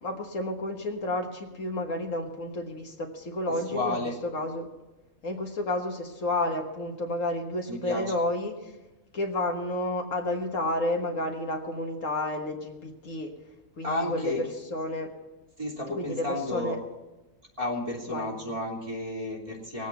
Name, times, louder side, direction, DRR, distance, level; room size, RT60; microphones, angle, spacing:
voice 1, 0.0-4.0 4.3-4.7 5.2-8.7 9.1-13.3 13.8-14.3 14.7-15.1 15.9-16.3 16.5-16.8 18.1-18.3, left 1 dB, 65° left, 2 dB, 1.8 m, -31 dB
voice 2, 3.5-4.1 7.7-8.1 13.8-14.4 15.6-16.8 17.6-19.9, left 2 dB, 25° right, -2 dB, 2.8 m, -32 dB
20.5 x 8.4 x 5.7 m, 1.1 s
omnidirectional pair, 1.5 m